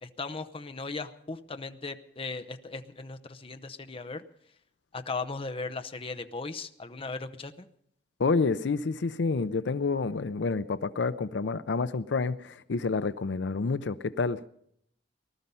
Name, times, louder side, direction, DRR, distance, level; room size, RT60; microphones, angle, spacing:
voice 1, 0.0-4.2 4.9-7.7, left 3 dB, 30° left, 0.8 m, -37 dB
voice 2, 8.2-14.5, left 4 dB, 75° left, 0.5 m, -29 dB
19.0 x 12.5 x 5.5 m
head